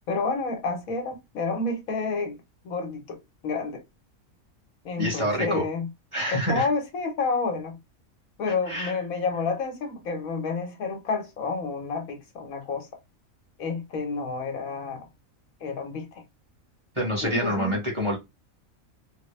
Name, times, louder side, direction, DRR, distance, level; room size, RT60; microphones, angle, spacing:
voice 1, 0.1-2.4 2.6-3.2 3.4-3.8 4.8-5.9 6.3-7.8 8.4-12.9 13.6-15.0 15.6-16.2 17.2-17.8, left 4 dB, 90° left, 1.4 m, -29 dB
voice 2, 5.0-5.6 6.1-6.7 8.7-8.9 16.9-18.2, equal, 20° right, 1.5 m, -27 dB
3.7 x 2.2 x 3.2 m
omnidirectional pair, 1.4 m